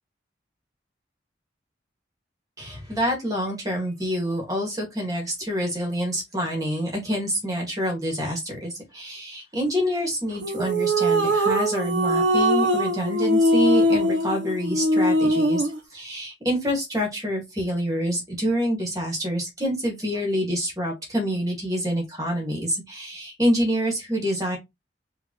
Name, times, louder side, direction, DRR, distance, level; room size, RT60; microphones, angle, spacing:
voice 1, 2.6-24.6, equal, 20° right, 1.9 m, -27 dB
sound 1, 10.4-15.8, equal, 90° right, 1.3 m, -21 dB
5.3 x 3.0 x 3.0 m
head